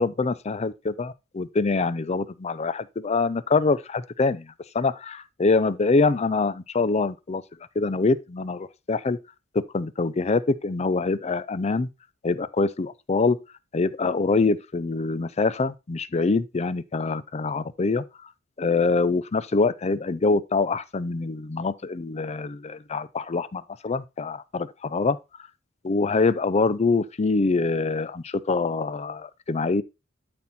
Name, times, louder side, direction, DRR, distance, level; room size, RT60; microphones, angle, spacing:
voice 1, 0.0-7.4 7.8-9.2 9.5-11.9 12.2-13.4 13.7-18.0 18.6-25.2 25.8-29.8, left 3 dB, 35° left, 0.5 m, -24 dB
12.0 x 4.3 x 4.2 m
head